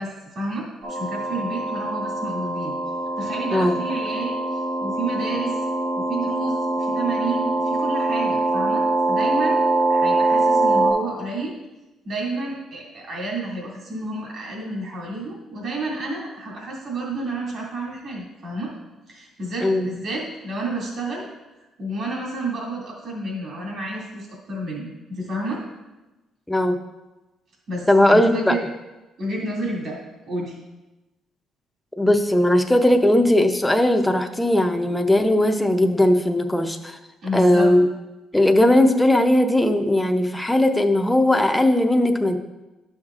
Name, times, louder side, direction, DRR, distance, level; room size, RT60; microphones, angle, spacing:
voice 1, 0.0-2.7 3.2-5.6 6.0-9.6 9.9-11.5 12.1-18.7 19.1-21.3 21.8-25.6 27.7-28.6 29.2-30.0 30.3-30.6 37.2-37.7, right 2 dB, 55° right, -3 dB, 2.2 m, -30 dB
sound 1, 0.8-10.9, right 2 dB, 80° right, 2.5 m, -23 dB
voice 2, 26.5-26.8 27.9-28.6 32.0-37.0 37.3-37.9 38.3-42.4, left 1 dB, 5° left, 5 dB, 0.6 m, -18 dB
11.5 x 6.4 x 2.4 m, 1.1 s
cardioid pair, 120°, 0 cm